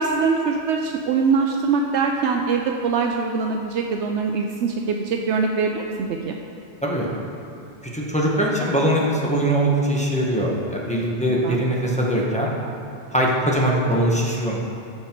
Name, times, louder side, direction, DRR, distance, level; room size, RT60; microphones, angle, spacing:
voice 1, 0.0-6.4 11.4-11.6, right 5 dB, 80° right, 2 dB, 0.9 m, -23 dB
voice 2, 7.8-12.5 13.1-14.6, right 1 dB, 5° left, -4 dB, 1.2 m, -21 dB
14.0 x 5.8 x 4.5 m, 2.7 s
omnidirectional pair, 1.2 m